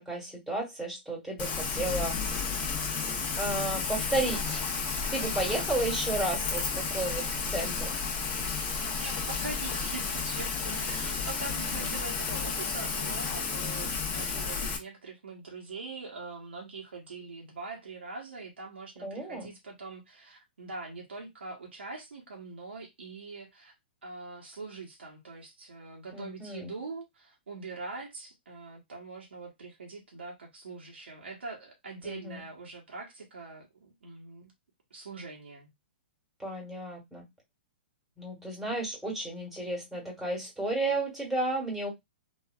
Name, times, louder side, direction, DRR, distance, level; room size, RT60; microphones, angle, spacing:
voice 1, 0.0-2.7 3.4-4.6 5.1-8.0 10.6-10.7 11.6-11.9 19.0-19.5 26.1-26.7 32.0-32.4 36.4-37.2 38.2-41.9, right 2 dB, 5° right, 1.3 m, -33 dB
Rain, 1.4-14.8, left 5 dB, 30° left, 0.7 m, -32 dB
voice 2, 8.9-23.7 24.0-34.5 34.9-35.7, right 3 dB, 90° right, 0.8 m, -43 dB
3.0 x 2.3 x 2.2 m
hypercardioid pair, 130°, 6 cm